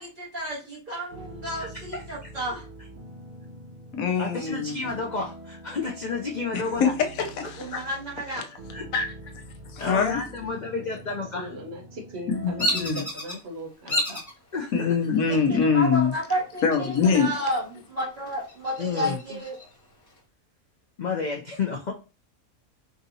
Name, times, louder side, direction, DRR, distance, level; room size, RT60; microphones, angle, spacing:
voice 1, 0.0-2.6 7.6-8.4 15.5-19.5, equal, 35° right, 1.6 m, -31 dB
sound 1, 1.1-12.9, right 1 dB, 80° right, 1.3 m, -44 dB
voice 2, 1.6-2.3 4.2-6.9 8.7-8.8 9.8-11.5 14.5-15.0 18.8-19.2 21.0-21.9, left 4 dB, 90° left, 0.4 m, -31 dB
voice 3, 3.9-4.7 6.5-6.9 7.2-7.8 8.9-9.1 9.7-10.2 12.3-13.1 14.7-16.1 16.6-17.3 19.0-19.1, left 5 dB, 75° left, 1.1 m, -24 dB
voice 4, 11.4-14.2 19.3-19.4, equal, 50° right, 1.1 m, -39 dB
Bird vocalization bird call bird song, 12.6-13.4 13.9-14.3 14.9-15.4 16.6-17.3 17.7-17.8 18.3-19.7, equal, 15° left, 1.2 m, -29 dB
4.8 x 2.7 x 2.7 m
omnidirectional pair, 1.5 m